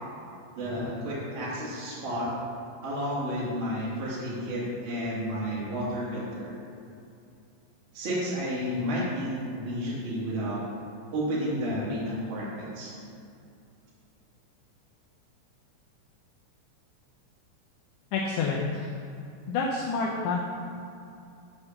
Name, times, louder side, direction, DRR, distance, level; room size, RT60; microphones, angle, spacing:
voice 1, 0.5-2.3 2.8-6.5 7.9-10.6 11.1-12.9, equal, 55° right, -7 dB, 1.5 m, -31 dB
voice 2, 18.1-19.0 19.5-20.4, left 4 dB, 90° left, -2 dB, 2.4 m, -28 dB
8.2 x 3.5 x 6.6 m, 2.6 s
omnidirectional pair, 5.6 m